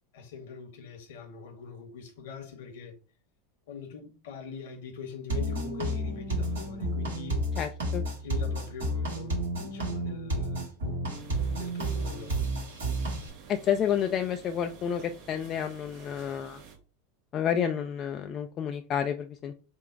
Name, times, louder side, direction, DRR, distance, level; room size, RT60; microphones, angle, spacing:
voice 1, 0.1-3.0 3.7-7.4 8.2-9.4 9.6-10.7 11.5-12.3, left 6 dB, 65° left, 1.1 m, -42 dB
sound 1, 5.3-13.3, right 1 dB, 75° right, 1.7 m, -31 dB
voice 2, 7.6-8.0 13.5-16.6 17.3-19.6, left 8 dB, 40° left, 0.4 m, -30 dB
sound 2, 11.1-16.8, right 6 dB, 50° right, 0.9 m, -50 dB
3.8 x 2.2 x 4.5 m
hypercardioid pair, 85°, 0 cm